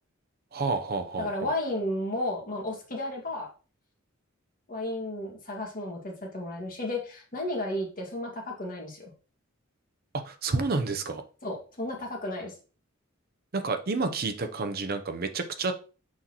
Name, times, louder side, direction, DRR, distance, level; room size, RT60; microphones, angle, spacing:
voice 1, 0.5-1.5 10.1-11.2 13.5-15.7, right 3 dB, 50° right, 8 dB, 0.7 m, -30 dB
voice 2, 1.2-3.5 4.7-9.1 11.4-12.5, left 1 dB, 40° left, 0 dB, 1.9 m, -33 dB
6.3 x 5.6 x 3.0 m, 0.36 s
head